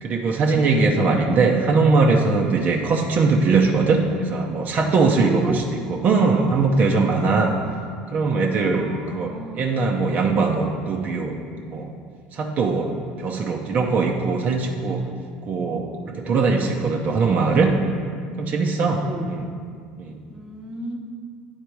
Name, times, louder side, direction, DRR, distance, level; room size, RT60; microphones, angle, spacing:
voice 1, 0.0-7.5 8.1-11.4 11.6-11.9 12.3-12.9 13.2-15.1 15.5-17.7 18.4-19.5 20.0-20.2, right 4 dB, 45° right, 0 dB, 0.7 m, -21 dB
voice 2, 0.8-1.3 5.2-5.6 8.7-9.7 19.0-19.4 20.3-21.0, right 2 dB, 10° right, 1 dB, 1.0 m, -33 dB
9.0 x 4.1 x 4.7 m, 2.1 s
supercardioid pair, 95°, 4 cm